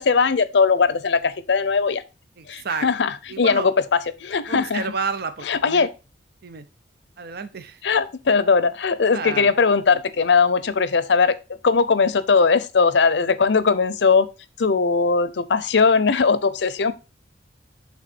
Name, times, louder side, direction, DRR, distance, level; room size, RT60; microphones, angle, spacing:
voice 1, 0.0-2.0 2.5-4.9 5.5-5.9 7.8-11.4 11.6-14.3 14.6-16.9, left 5 dB, 70° left, 0.6 m, -19 dB
voice 2, 2.4-2.9 3.3-3.7 4.5-5.9 6.4-6.6 7.2-7.8 9.1-9.5, right 4 dB, 60° right, 0.6 m, -30 dB
8.3 x 3.6 x 4.3 m
head